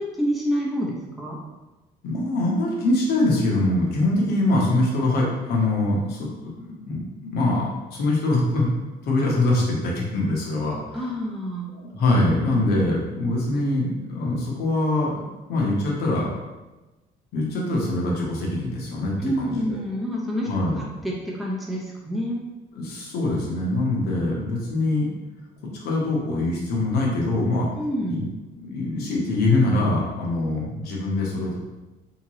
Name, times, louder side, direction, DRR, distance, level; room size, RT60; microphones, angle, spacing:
voice 1, 0.0-1.4 10.9-11.7 19.2-20.5 21.0-22.4 27.8-28.2, equal, ahead, -4 dB, 0.8 m, -27 dB
voice 2, 2.0-6.3 6.6-8.7 9.1-11.1 11.7-16.3 17.3-19.6 20.5-20.8 22.7-25.1 25.8-27.7 28.1-28.2 28.6-31.6, left 2 dB, 75° left, -3 dB, 1.1 m, -23 dB
3.6 x 2.9 x 3.0 m, 1.1 s
cardioid pair, 110°, 17 cm